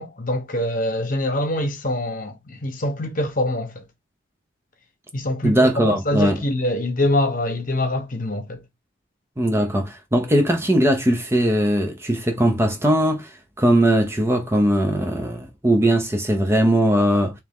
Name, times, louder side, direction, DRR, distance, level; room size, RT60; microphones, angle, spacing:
voice 1, 0.0-3.8 5.1-8.6, left 1 dB, 45° left, 1.0 m, -24 dB
voice 2, 5.4-6.4 9.4-17.3, right 1 dB, 15° right, 0.6 m, -19 dB
3.5 x 3.1 x 3.5 m
head